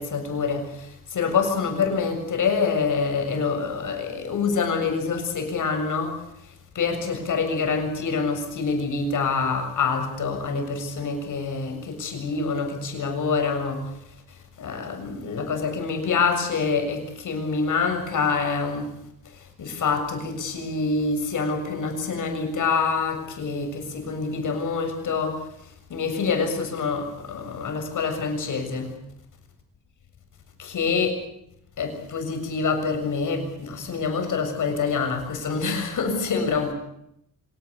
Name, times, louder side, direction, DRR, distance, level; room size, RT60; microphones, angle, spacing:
voice 1, 0.0-14.0 14.3-19.0 19.3-25.5 25.9-28.9 30.6-31.1 31.8-36.7, left 5 dB, 60° left, 6 dB, 7.2 m, -26 dB
26.5 x 18.5 x 8.2 m, 0.77 s
wide cardioid pair, 165°, 36 cm